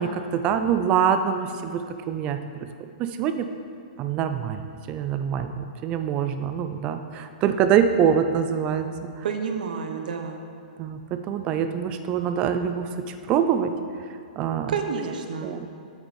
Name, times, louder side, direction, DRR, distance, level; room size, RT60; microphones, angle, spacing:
voice 1, 0.0-2.4 3.0-3.5 4.0-9.3 10.8-13.7 14.4-14.8 15.4-15.7, right 8 dB, 25° right, 8 dB, 0.4 m, -25 dB
voice 2, 9.2-10.4 14.7-15.6, right 6 dB, 70° right, 5 dB, 0.9 m, -29 dB
8.1 x 6.2 x 4.2 m, 2.3 s
hypercardioid pair, 160°, 5 cm